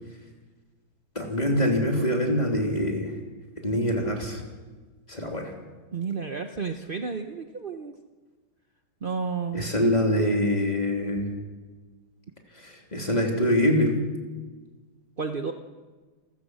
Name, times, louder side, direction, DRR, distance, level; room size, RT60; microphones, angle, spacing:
voice 1, 1.2-3.2 3.6-4.4 5.1-5.5 9.5-11.3 12.5-13.9, equal, 20° left, 1 dB, 3.3 m, -24 dB
voice 2, 5.9-7.9 9.0-9.9 15.2-15.5, right 5 dB, 55° right, 6 dB, 0.5 m, -31 dB
27.5 x 15.5 x 6.4 m, 1.3 s
omnidirectional pair, 2.3 m